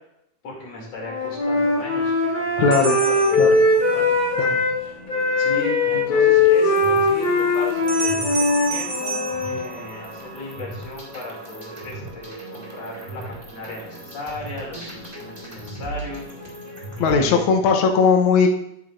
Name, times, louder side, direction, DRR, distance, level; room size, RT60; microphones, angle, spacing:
voice 1, 0.4-3.6 3.9-4.1 5.4-16.3 17.0-17.5, left 2 dB, 60° left, -2 dB, 3.6 m, -36 dB
Wind instrument woodwind instrument, 1.0-4.8 5.1-9.6, left 3 dB, 25° left, 3.4 m, -20 dB
voice 2, 2.6-3.0 3.4-3.5 4.4-4.6 17.0-18.5, left 5 dB, 80° left, 3 dB, 1.1 m, -18 dB
sound 1, 2.7-4.2 7.9-10.4, right 4 dB, 75° right, 0.8 m, -31 dB
sound 2, 3.1-17.2, right 1 dB, 15° right, 1.7 m, -38 dB
10.5 x 8.8 x 2.5 m, 0.81 s
omnidirectional pair, 3.5 m